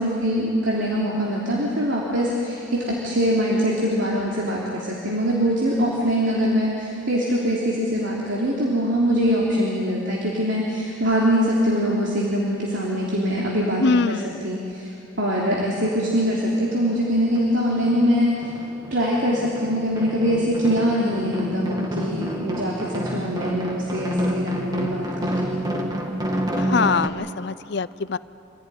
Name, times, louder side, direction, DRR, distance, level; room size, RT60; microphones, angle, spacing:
voice 1, 0.0-14.9 15.2-18.3 18.9-25.6, equal, 65° right, -4 dB, 3.4 m, -23 dB
voice 2, 13.8-14.4 26.6-28.2, left 4 dB, 55° left, 16 dB, 0.5 m, -23 dB
sound 1, 15.9-16.0 16.3-17.5 17.8-27.1, equal, 20° right, 1.9 m, -29 dB
26.0 x 16.0 x 10.0 m, 2.8 s
head